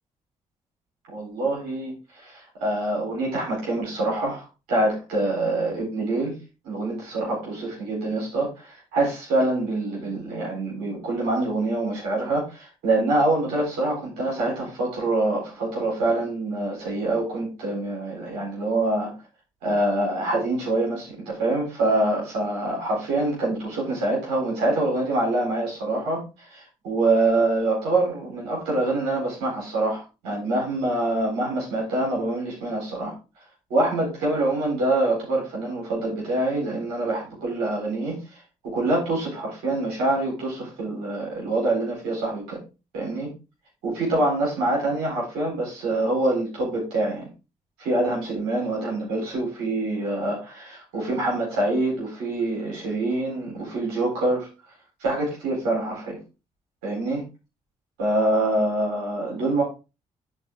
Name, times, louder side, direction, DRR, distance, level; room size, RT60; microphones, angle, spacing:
voice 1, 1.1-6.3 6.6-19.1 19.6-33.1 33.7-42.6 42.9-43.3 43.8-47.3 47.8-54.5 55.0-56.2 56.8-57.2 58.0-59.6, right 2 dB, 85° right, -4 dB, 4.1 m, -25 dB
12.0 x 4.4 x 3.6 m, 0.29 s
hypercardioid pair, 45°, 15 cm